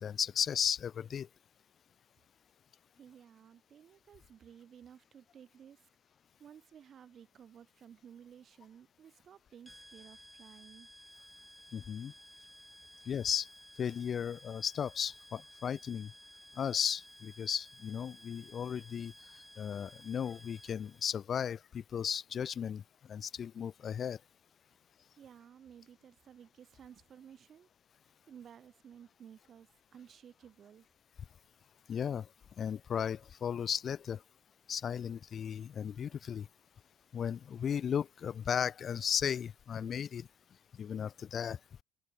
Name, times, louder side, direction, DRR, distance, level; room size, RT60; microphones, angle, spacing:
voice 1, 0.0-1.3 11.7-12.1 13.1-13.5 13.8-16.1 16.6-19.1 19.6-22.8 23.1-24.2 31.9-32.3 32.6-34.2 34.7-36.5 37.1-40.3 40.8-41.6, left 8 dB, 40° left, 0.4 m, -35 dB
voice 2, 3.0-5.8 6.4-10.9 25.1-27.7 28.3-30.9, right 8 dB, 45° right, 0.8 m, -55 dB
sound 1, 9.7-21.1, equal, ahead, 0.8 m, -56 dB
supercardioid pair, 100°, 0 cm